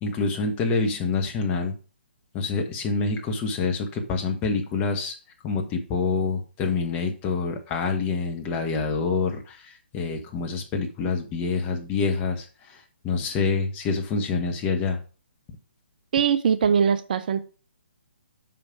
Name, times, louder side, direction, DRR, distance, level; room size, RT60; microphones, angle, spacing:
voice 1, 0.0-1.7 2.3-5.1 5.4-9.6 9.9-12.5 13.0-15.0, left 4 dB, 20° left, 1.3 m, -26 dB
voice 2, 16.1-17.4, right 7 dB, 45° right, 0.5 m, -21 dB
5.5 x 5.1 x 5.8 m
figure-of-eight pair, 135°, 6 cm